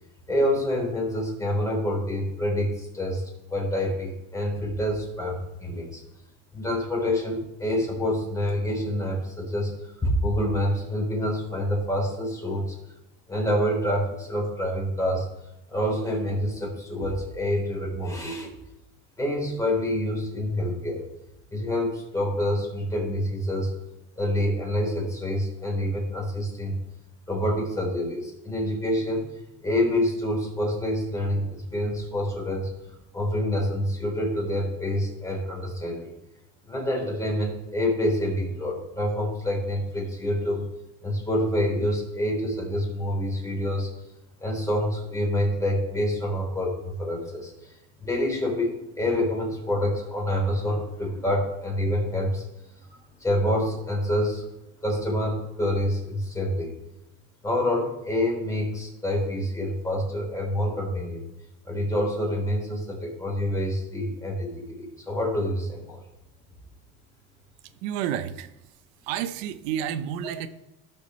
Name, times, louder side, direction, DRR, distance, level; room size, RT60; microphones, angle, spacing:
voice 1, 0.3-3.2 3.5-6.0 6.5-9.7 10.0-12.8 13.3-15.3 15.7-18.5 19.2-21.1 21.5-23.7 24.2-26.8 27.3-29.2 29.6-32.7 33.1-36.1 36.7-40.6 41.0-43.9 44.4-47.5 48.0-52.4 53.2-54.4 54.8-56.7 57.4-61.2 61.6-66.0, left 1 dB, 10° left, -1 dB, 3.8 m, -27 dB
voice 2, 67.8-68.6 69.0-70.5, right 10 dB, 80° right, 12 dB, 0.9 m, -30 dB
17.0 x 7.0 x 3.2 m, 0.93 s
cardioid pair, 120°, 31 cm